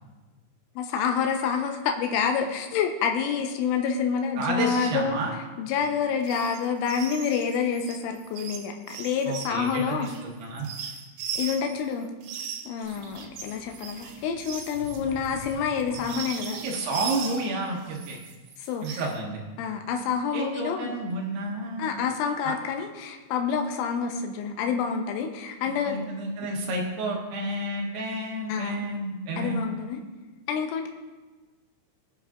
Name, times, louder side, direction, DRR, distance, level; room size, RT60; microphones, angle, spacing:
voice 1, 0.8-5.2 5.6-10.1 11.4-12.1 12.7-16.6 18.6-19.0 19.6-20.9 21.8-26.0 28.5-28.9 29.4-30.0 30.5-30.9, left 6 dB, 90° left, 3 dB, 3.3 m, -28 dB
voice 2, 4.4-5.3 9.3-10.7 16.6-18.2 18.8-19.4 20.3-22.0 22.4-22.6 25.7-29.6, right 2 dB, 70° right, -1 dB, 2.9 m, -31 dB
sound 1, 6.2-6.6 6.8-11.8 12.2-17.5 17.9-19.1, right 7 dB, 85° right, 2.2 m, -38 dB
Sink (filling or washing), 12.8-16.6, left 1 dB, 60° left, 3.1 m, -45 dB
20.0 x 7.1 x 2.4 m, 1.3 s
omnidirectional pair, 5.6 m